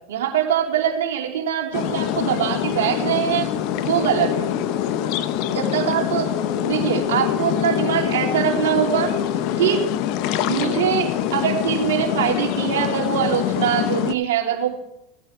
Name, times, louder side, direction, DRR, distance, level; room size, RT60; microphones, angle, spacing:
voice 1, 0.1-3.5 3.8-4.5 5.5-6.3 6.6-9.1 9.6-9.8 10.5-14.7, right 9 dB, 80° right, 1 dB, 2.9 m, -23 dB
sound 1, 1.7-14.1, left 10 dB, 60° left, 0.9 m, -24 dB
17.0 x 9.0 x 3.8 m, 0.84 s
hypercardioid pair, 95°, 0 cm